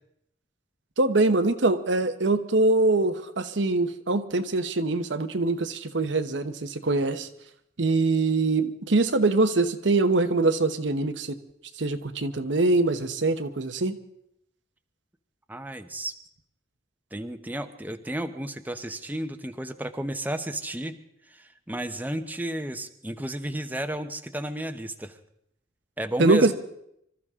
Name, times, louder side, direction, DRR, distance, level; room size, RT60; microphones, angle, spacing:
voice 1, 1.0-7.3 7.8-11.4 11.8-14.0 26.2-26.5, right 2 dB, 75° right, 9 dB, 1.0 m, -23 dB
voice 2, 15.5-16.2 17.1-20.9 21.3-25.2 26.0-26.5, right 1 dB, 10° right, 7 dB, 0.9 m, -32 dB
25.0 x 14.0 x 3.7 m, 0.75 s
head